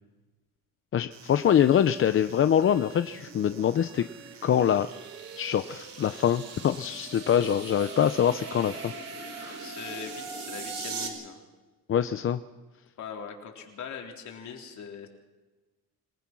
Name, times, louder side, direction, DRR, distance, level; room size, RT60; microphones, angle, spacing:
voice 1, 0.9-4.1 4.4-4.9 5.4-8.9 9.3-9.6 11.9-12.4, left 9 dB, 35° left, 11 dB, 0.6 m, -24 dB
sound 1, 1.1-7.1, right 9 dB, 70° right, 3.1 m, -52 dB
sound 2, 3.1-11.1, right 4 dB, 45° right, 4.9 m, -40 dB
voice 2, 9.6-11.4 13.0-15.1, left 6 dB, 55° left, 2 dB, 3.8 m, -41 dB
27.0 x 19.5 x 6.2 m, 1.2 s
cardioid pair, 150°, 35 cm